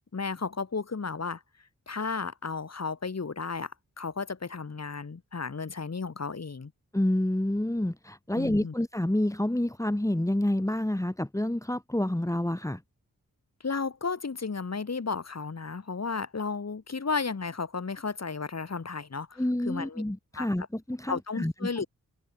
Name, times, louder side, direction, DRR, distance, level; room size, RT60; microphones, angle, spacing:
voice 1, 0.1-1.4 1.9-3.7 4.0-6.7 8.4-8.7 13.6-20.0 20.3-20.5 21.1-21.9, left 4 dB, 55° left, 5.3 m, -33 dB
voice 2, 6.9-12.8 19.4-21.5, left 1 dB, 10° left, 3.2 m, -28 dB
wide cardioid pair, 95°, 32 cm